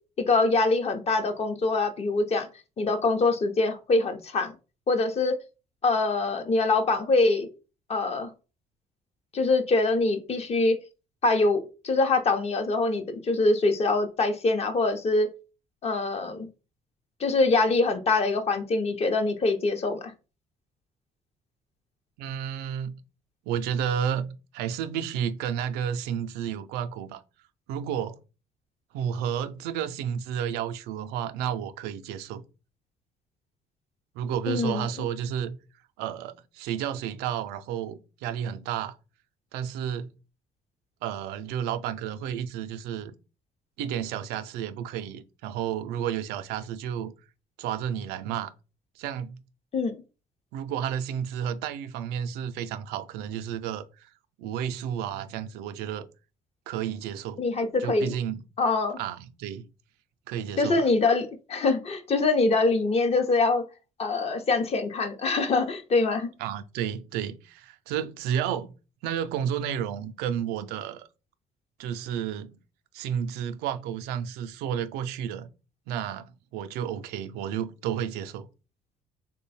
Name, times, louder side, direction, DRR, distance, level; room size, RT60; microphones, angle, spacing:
voice 1, 0.2-2.5 2.8-4.5 4.9-5.4 5.8-7.5 7.9-8.3 9.3-10.8 11.2-15.3 15.8-16.5 17.2-20.1 34.5-34.9 49.7-50.0 57.4-58.1 58.6-59.0 60.6-63.6 64.0-66.3, left 3 dB, 40° left, 0.7 m, -24 dB
voice 2, 22.2-23.0 23.5-27.2 27.7-28.2 28.9-32.4 34.1-35.6 36.0-39.0 39.5-40.1 41.0-43.1 43.8-47.1 47.6-48.5 49.0-49.4 50.5-54.1 54.4-56.1 56.7-57.5 57.8-58.4 59.0-59.7 60.3-60.9 66.4-68.7 69.0-71.1 71.8-72.6 72.9-75.5 75.9-78.5, right 9 dB, 85° right, 0.4 m, -31 dB
3.1 x 2.2 x 4.1 m
supercardioid pair, 75°, 16 cm